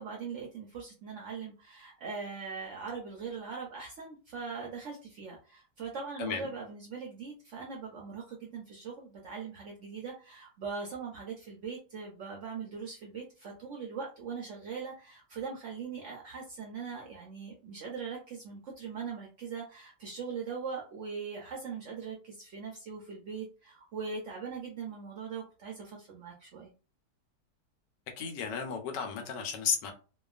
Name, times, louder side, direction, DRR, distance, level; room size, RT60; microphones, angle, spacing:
voice 1, 0.0-26.7, right 5 dB, 70° right, 0.7 m, -41 dB
voice 2, 28.2-29.9, left 6 dB, 90° left, 1.3 m, -33 dB
2.8 x 2.3 x 2.3 m
omnidirectional pair, 1.8 m